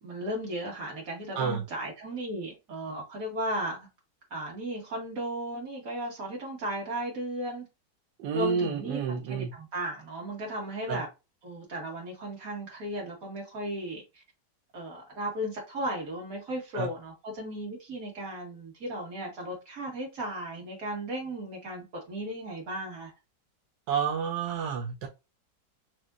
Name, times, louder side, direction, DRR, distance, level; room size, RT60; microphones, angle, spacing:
voice 1, 0.0-3.9 4.3-7.7 8.3-11.1 11.4-14.2 14.7-23.1, right 1 dB, 50° right, 2.0 m, -35 dB
voice 2, 8.2-9.5 10.9-11.0 16.7-16.9 23.9-25.1, right 6 dB, 85° right, 1.3 m, -29 dB
6.0 x 2.6 x 2.3 m
omnidirectional pair, 1.9 m